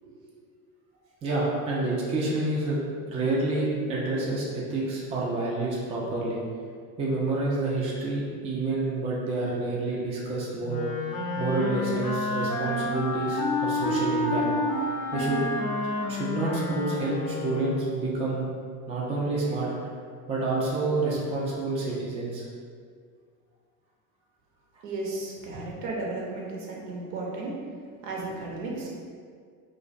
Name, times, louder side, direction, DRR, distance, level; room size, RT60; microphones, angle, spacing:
voice 1, 1.2-2.8 3.1-6.4 7.0-10.8 11.4-14.5 15.1-15.4 16.1-18.4 18.9-19.7 20.3-22.4 25.5-25.6, right 2 dB, 15° right, -5 dB, 0.4 m, -28 dB
Wind instrument woodwind instrument, 10.6-18.0, left 2 dB, 45° left, 0.5 m, -29 dB
voice 2, 24.8-27.6 28.0-28.9, right 2 dB, 70° right, -3 dB, 0.7 m, -34 dB
2.4 x 2.1 x 2.4 m, 2.1 s
hypercardioid pair, 80°, 45 cm